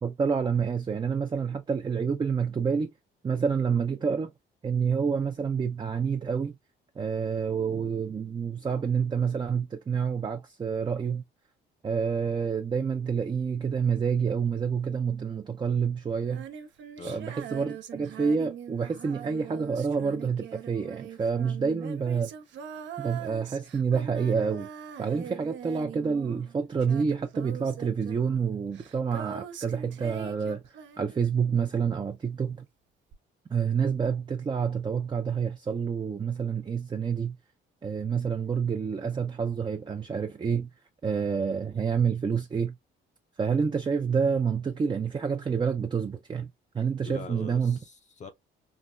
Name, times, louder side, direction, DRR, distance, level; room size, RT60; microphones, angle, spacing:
voice 1, 0.0-2.9 3.2-4.3 4.6-6.5 7.0-11.2 11.8-16.5 17.0-22.3 23.0-24.7 25.0-30.6 31.0-32.6 33.5-37.4 37.8-40.7 41.0-42.8 43.4-47.8, right 6 dB, 25° right, 0.4 m, -28 dB
Female singing, 16.2-31.6 33.1-33.2, right 8 dB, 70° right, 0.5 m, -42 dB
voice 2, 47.0-48.3, left 4 dB, 35° left, 0.5 m, -42 dB
3.2 x 2.1 x 2.3 m
cardioid pair, 90°, 20 cm